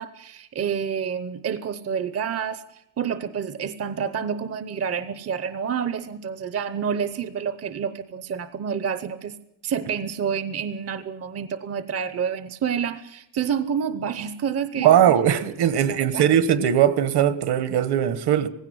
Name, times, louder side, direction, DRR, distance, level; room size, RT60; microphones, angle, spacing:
voice 1, 0.0-9.4 9.6-15.3 15.9-16.3, right 7 dB, 35° right, 0.8 m, -28 dB
voice 2, 14.8-18.5, right 10 dB, 60° right, 1.5 m, -19 dB
18.0 x 16.5 x 9.5 m
cardioid pair, 165°, 44 cm